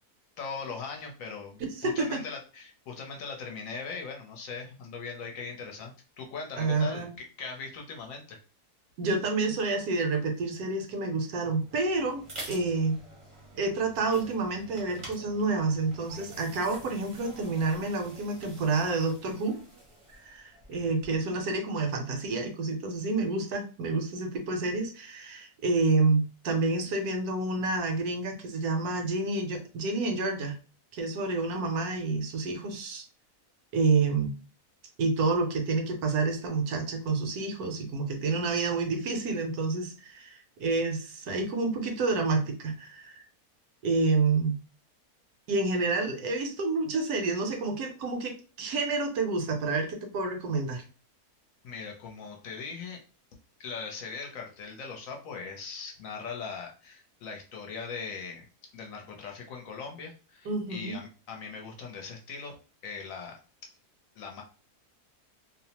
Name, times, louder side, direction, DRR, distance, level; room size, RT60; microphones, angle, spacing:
voice 1, 0.4-7.1 7.4-8.4 20.7-20.9 51.6-53.0 53.6-58.5 58.7-62.6 62.8-63.4 64.2-64.4, left 5 dB, 70° left, 1 dB, 1.0 m, -40 dB
voice 2, 1.6-2.2 6.6-7.1 9.0-13.0 13.6-19.6 20.1-30.5 30.9-33.0 33.7-34.3 35.0-43.2 43.8-44.5 45.5-50.8 60.5-61.0, right 3 dB, 75° right, 4 dB, 1.1 m, -29 dB
sound 1, 11.5-21.3, right 1 dB, 30° right, 0.6 m, -48 dB
2.8 x 2.0 x 2.8 m, 0.36 s
omnidirectional pair, 1.6 m